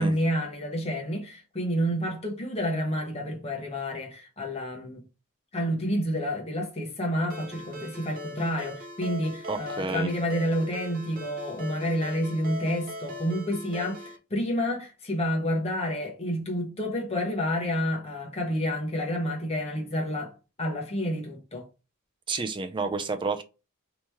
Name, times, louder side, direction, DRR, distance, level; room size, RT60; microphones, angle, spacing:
voice 1, 0.0-5.0 5.5-20.3 20.6-21.6, equal, 30° left, 1.0 m, -29 dB
Ringtone, 7.3-14.2, equal, 40° right, 0.8 m, -40 dB
voice 2, 9.5-10.1 22.3-23.4, right 3 dB, 20° right, 0.4 m, -30 dB
3.0 x 2.9 x 3.4 m
head